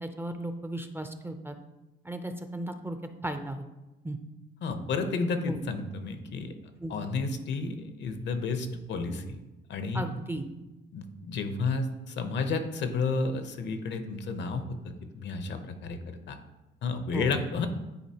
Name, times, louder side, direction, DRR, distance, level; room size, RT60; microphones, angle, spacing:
voice 1, 0.0-1.6 2.0-3.0 3.2-3.6 4.0-4.2 5.5-5.6 6.8-6.9 9.9-10.5 17.1-17.3, right 1 dB, 10° right, 7 dB, 0.4 m, -35 dB
voice 2, 4.6-6.5 6.9-9.4 9.7-10.1 10.9-14.6 15.2-16.4 16.8-17.7, left 4 dB, 65° left, 8 dB, 0.7 m, -31 dB
9.4 x 3.9 x 2.8 m, 1.0 s
cardioid pair, 90°, 20 cm